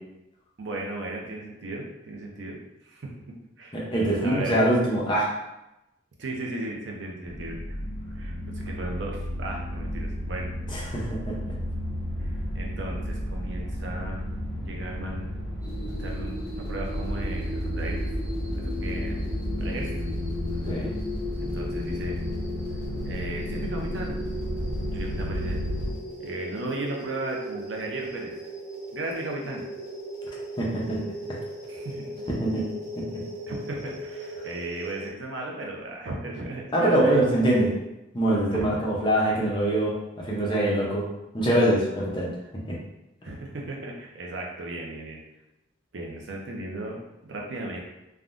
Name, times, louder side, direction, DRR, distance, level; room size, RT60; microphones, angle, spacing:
voice 1, 0.6-3.1 3.6-3.8 4.2-4.6 6.2-10.5 12.5-14.2 14.7-15.3 15.8-18.0 18.5-19.2 19.6-20.0 21.4-22.2 23.0-24.2 24.9-25.6 26.2-28.3 28.9-29.6 31.7-32.1 33.5-37.3 38.5-38.7 43.2-45.2 45.9-47.8, right 2 dB, 70° right, 0 dB, 0.6 m, -36 dB
voice 2, 3.7-5.3 10.7-11.4 20.7-20.9 30.6-31.0 32.4-32.6 33.0-33.2 36.7-37.7 38.1-41.1 41.3-42.3 42.7-42.8, right 1 dB, 25° left, -4 dB, 0.6 m, -24 dB
sound 1, 7.2-25.9, equal, 70° left, 0.8 m, -32 dB
sound 2, 15.6-35.1, equal, 10° right, 1.2 m, -38 dB
3.5 x 2.2 x 2.5 m, 0.93 s
head